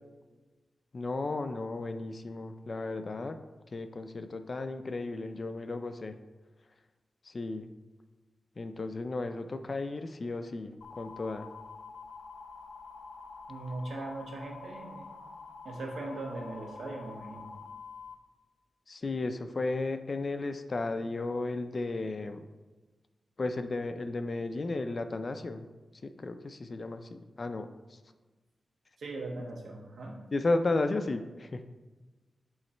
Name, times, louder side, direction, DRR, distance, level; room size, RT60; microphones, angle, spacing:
voice 1, 0.9-3.4 3.7-6.2 7.2-7.7 8.6-11.5 18.9-22.5 23.4-25.6 26.0-28.0 30.3-31.6, left 2 dB, 35° left, 9 dB, 0.3 m, -34 dB
sound 1, 10.8-18.1, left 4 dB, 85° left, 0.7 m, -47 dB
voice 2, 13.5-15.1 15.6-17.6 29.0-30.2, right 2 dB, 80° right, 0 dB, 1.1 m, -39 dB
7.9 x 3.1 x 4.3 m, 1.2 s
wide cardioid pair, 175°, 0 cm